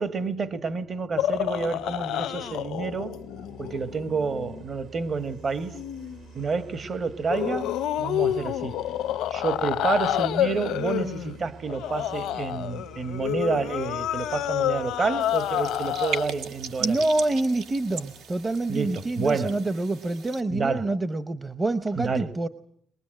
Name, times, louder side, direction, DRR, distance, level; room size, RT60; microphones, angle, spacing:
voice 1, 0.0-3.2 3.6-5.8 6.3-8.8 9.3-17.0 18.7-19.6 20.5-20.9 21.9-22.3, right 4 dB, 45° right, 1.5 m, -29 dB
sound 1, 1.1-19.4, right 5 dB, 65° right, 2.5 m, -50 dB
sound 2, 1.2-4.6 5.7-6.2 7.3-16.3, left 12 dB, 90° left, 0.9 m, -29 dB
sound 3, 15.2-20.4, right 6 dB, 90° right, 2.1 m, -37 dB
voice 2, 16.8-22.5, right 2 dB, 25° right, 0.9 m, -27 dB
22.5 x 22.0 x 7.8 m
cardioid pair, 90°, 0 cm